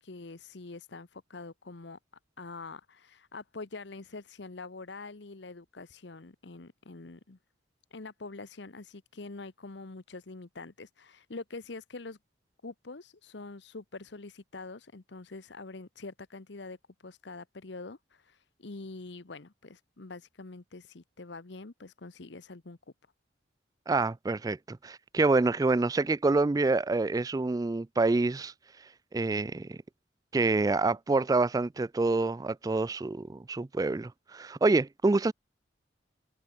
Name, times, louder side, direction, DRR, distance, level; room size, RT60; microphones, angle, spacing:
voice 1, 0.0-2.0 2.4-7.4 7.9-12.2 12.6-22.8, left 3 dB, 65° left, 1.0 m, -45 dB
voice 2, 23.9-28.5 29.1-29.8 30.3-35.3, right 3 dB, 20° right, 0.3 m, -27 dB
head